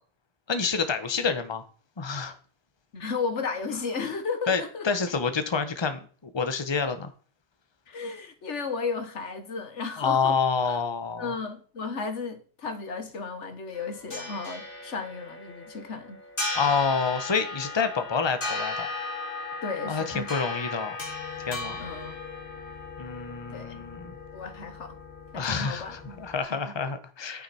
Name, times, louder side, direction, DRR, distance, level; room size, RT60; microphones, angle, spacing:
voice 1, 0.5-1.6 2.0-2.4 4.5-6.0 6.3-7.1 10.0-11.3 16.5-18.9 19.9-21.0 21.5-21.8 23.0-24.1 25.3-27.4, left 5 dB, 25° left, 1.0 m, -28 dB
voice 2, 2.9-5.0 7.9-10.4 10.6-10.8 11.2-16.2 19.6-20.3 21.8-22.1 23.5-23.8 24.3-25.0 25.3-26.2 26.5-26.7, left 4 dB, 85° left, 1.6 m, -34 dB
sound 1, 13.7-26.4, left 3 dB, 50° left, 2.3 m, -36 dB
9.3 x 8.7 x 4.3 m
omnidirectional pair, 1.2 m